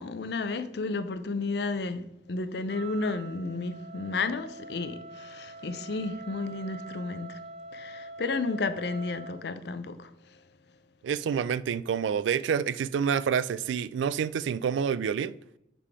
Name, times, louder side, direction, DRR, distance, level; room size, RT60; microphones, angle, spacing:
voice 1, 0.0-7.4 7.7-10.4, left 3 dB, 65° left, 0.5 m, -32 dB
Wind instrument woodwind instrument, 2.7-9.5, right 2 dB, 35° right, 0.6 m, -45 dB
voice 2, 11.0-15.4, right 7 dB, 85° right, 0.3 m, -28 dB
6.6 x 3.7 x 4.8 m
head